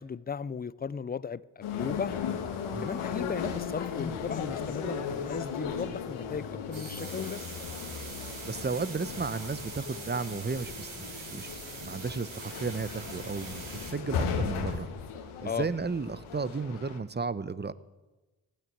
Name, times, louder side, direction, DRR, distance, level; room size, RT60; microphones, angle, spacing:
voice 1, 0.0-2.2 2.8-7.6 15.4-15.7, left 6 dB, 20° left, 0.5 m, -36 dB
sound 1, 1.6-17.0, left 6 dB, 80° left, 1.8 m, -36 dB
sound 2, 6.7-13.9, right 3 dB, 70° right, 7.1 m, -43 dB
voice 2, 8.4-11.5 11.8-14.9 15.4-17.7, right 4 dB, 20° right, 0.8 m, -34 dB
16.0 x 9.4 x 8.7 m
supercardioid pair, 50°, 49 cm